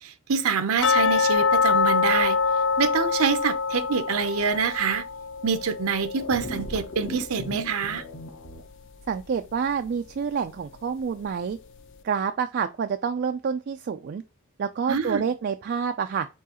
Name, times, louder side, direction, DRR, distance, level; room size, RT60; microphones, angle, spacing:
voice 1, 0.0-2.4 2.8-5.1 5.4-8.0 14.9-15.2, right 6 dB, 80° right, 0.7 m, -26 dB
sound 1, 0.8-7.7 8.0-8.1 8.6-8.7 9.2-9.3, left 5 dB, 55° left, 0.4 m, -25 dB
sound 2, 6.2-8.6, left 1 dB, 90° left, 1.5 m, -37 dB
voice 2, 9.1-11.6 12.0-14.2 14.6-16.3, right 6 dB, 50° right, 0.3 m, -28 dB
4.5 x 4.0 x 2.9 m
head